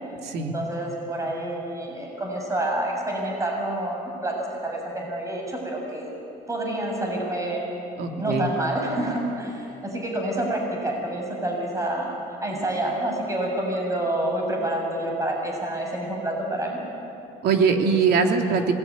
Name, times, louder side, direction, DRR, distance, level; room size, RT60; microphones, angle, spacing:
voice 1, 0.5-6.1 6.5-7.7 8.1-16.8, right 1 dB, 20° right, 0 dB, 7.0 m, -28 dB
voice 2, 8.0-8.5 17.4-18.6, right 5 dB, 70° right, 3 dB, 2.9 m, -21 dB
26.5 x 21.0 x 9.6 m, 2.9 s
cardioid pair, 110°, 17 cm